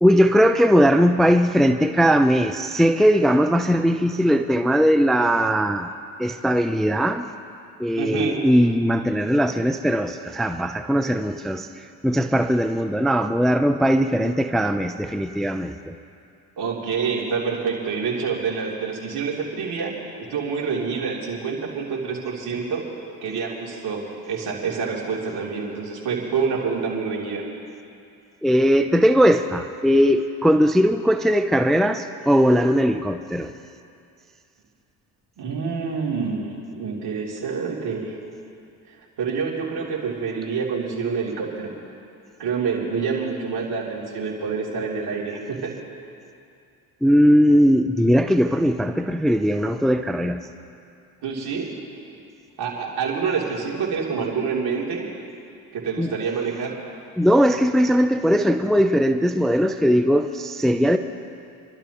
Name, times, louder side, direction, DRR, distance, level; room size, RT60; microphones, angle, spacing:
voice 1, 0.0-5.9 6.2-7.3 7.8-11.7 12.0-15.9 28.4-33.5 47.0-50.4 56.0-56.1 57.2-61.0, equal, ahead, 7 dB, 0.5 m, -19 dB
voice 2, 8.0-8.4 16.6-19.9 20.3-22.8 23.2-27.4 35.4-38.2 39.2-41.7 42.4-45.7 51.2-51.7 52.6-55.0 55.7-56.7, right 5 dB, 60° right, -3 dB, 3.4 m, -27 dB
30.0 x 12.0 x 3.1 m, 2.5 s
supercardioid pair, 70°, 43 cm